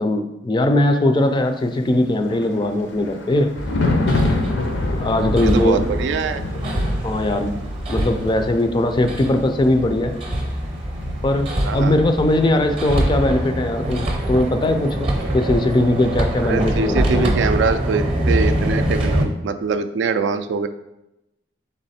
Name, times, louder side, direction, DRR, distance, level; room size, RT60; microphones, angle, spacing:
voice 1, 0.0-3.5 5.0-5.8 7.0-7.6 7.9-10.2 11.2-15.1 15.3-17.3, left 1 dB, 25° left, 7 dB, 0.3 m, -20 dB
Thunder, 1.9-16.4 16.7-17.0, left 2 dB, 85° left, 0.6 m, -29 dB
Hammer, 3.6-19.2, right 1 dB, 30° right, 0.7 m, -24 dB
voice 2, 5.4-6.4 11.6-11.9 16.4-20.7, right 5 dB, 70° right, 10 dB, 0.3 m, -23 dB
3.5 x 3.2 x 4.1 m, 0.92 s
head